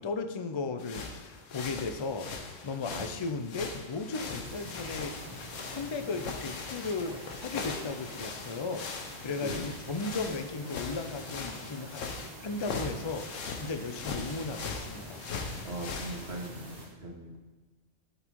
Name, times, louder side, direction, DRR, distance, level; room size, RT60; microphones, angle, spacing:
voice 1, 0.0-5.2 5.7-12.0 12.4-15.2, left 4 dB, 50° left, 8 dB, 0.3 m, -36 dB
sound 1, 0.8-16.5, left 4 dB, 75° left, 1.3 m, -40 dB
sound 2, 4.4-16.9, equal, 40° right, 1.9 m, -46 dB
voice 2, 15.6-17.4, right 2 dB, 55° right, -1 dB, 1.7 m, -40 dB
11.5 x 4.1 x 4.6 m, 1.2 s
omnidirectional pair, 1.3 m